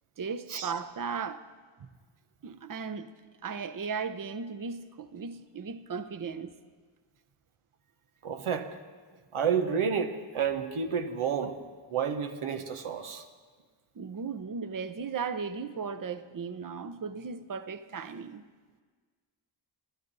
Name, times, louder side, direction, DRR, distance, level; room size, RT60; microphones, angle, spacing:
voice 1, 0.2-1.5 2.4-3.1 3.4-6.5 14.0-18.4, right 5 dB, 40° right, 0.8 m, -36 dB
voice 2, 8.2-8.7 9.3-11.6 11.9-13.2, right 7 dB, 90° right, 1.0 m, -30 dB
25.0 x 11.5 x 4.0 m
cardioid pair, 45°, 48 cm